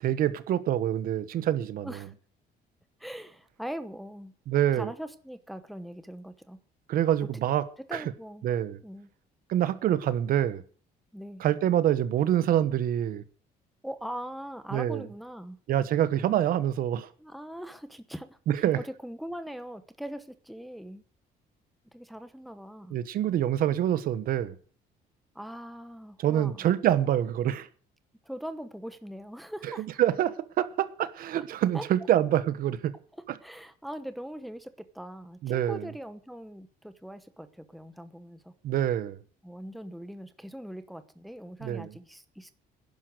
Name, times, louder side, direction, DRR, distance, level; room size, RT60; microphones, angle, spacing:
voice 1, 0.0-1.9 4.5-4.9 6.9-7.6 7.9-8.0 8.4-8.8 9.5-10.6 11.4-13.2 14.7-15.0 15.7-17.1 18.5-18.8 22.9-24.5 26.2-27.7 30.0-32.9 35.4-35.8 38.6-39.2 41.6-41.9, right 11 dB, 60° right, 1.2 m, -26 dB
voice 2, 1.8-2.1 3.0-4.3 4.7-6.6 7.9-8.5 8.8-9.1 11.1-11.4 13.8-15.6 17.2-18.4 18.7-21.0 21.9-23.0 25.3-26.7 28.2-29.9 31.7-31.9 33.4-38.5 39.4-42.5, equal, ahead, 1.0 m, -41 dB
11.0 x 11.0 x 8.0 m
cardioid pair, 165°, 17 cm